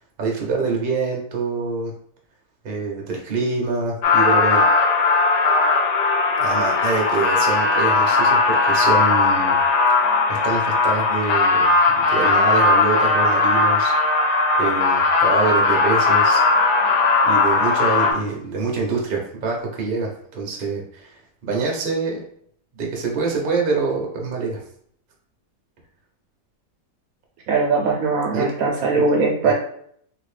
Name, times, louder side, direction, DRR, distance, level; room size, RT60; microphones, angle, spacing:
voice 1, 0.2-1.9 2.6-4.6 6.4-9.6 10.3-11.7 11.9-13.9 14.6-16.4 17.2-22.2 22.8-24.6 28.3-28.5 29.4-29.5, right 4 dB, 45° right, 0 dB, 0.7 m, -25 dB
sound 1, 4.0-18.1, left 3 dB, 65° left, 0.7 m, -18 dB
voice 2, 27.5-29.5, right 4 dB, 70° right, -1 dB, 0.9 m, -20 dB
2.9 x 2.7 x 3.3 m, 0.65 s
omnidirectional pair, 1.8 m